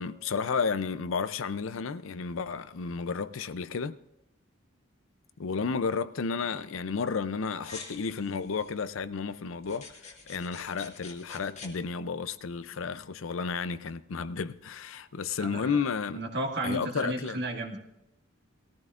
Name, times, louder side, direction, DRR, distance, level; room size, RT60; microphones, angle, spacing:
voice 1, 0.0-4.0 5.4-16.2 16.6-17.4, left 5 dB, 80° left, 0.5 m, -32 dB
sound 1, 7.6-8.7 9.6-11.7, left 4 dB, 35° left, 1.8 m, -47 dB
voice 2, 15.4-15.8 16.1-17.8, right 1 dB, 55° right, 1.7 m, -33 dB
19.0 x 14.5 x 2.5 m
head